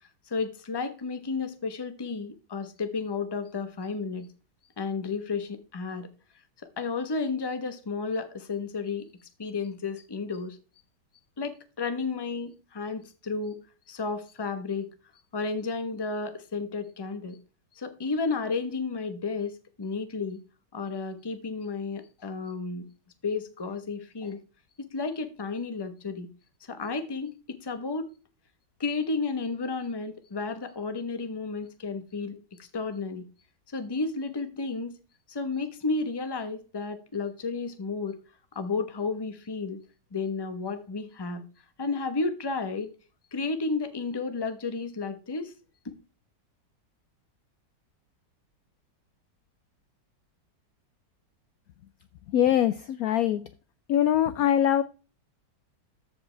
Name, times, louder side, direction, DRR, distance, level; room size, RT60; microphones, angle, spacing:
voice 1, 0.3-4.3 4.8-6.1 6.8-9.1 9.4-10.6 11.4-13.6 13.9-14.9 15.3-17.4 17.7-20.4 20.7-22.9 23.2-24.4 24.8-26.3 26.6-28.1 28.8-33.2 33.7-35.0 35.3-38.2 38.5-39.8 40.1-41.4 41.8-42.9 43.3-45.5 45.8-45.9, left 4 dB, 20° left, 0.7 m, -32 dB
voice 2, 52.3-53.4 53.9-54.8, left 10 dB, 70° left, 0.8 m, -23 dB
14.5 x 5.1 x 3.3 m
omnidirectional pair, 1.9 m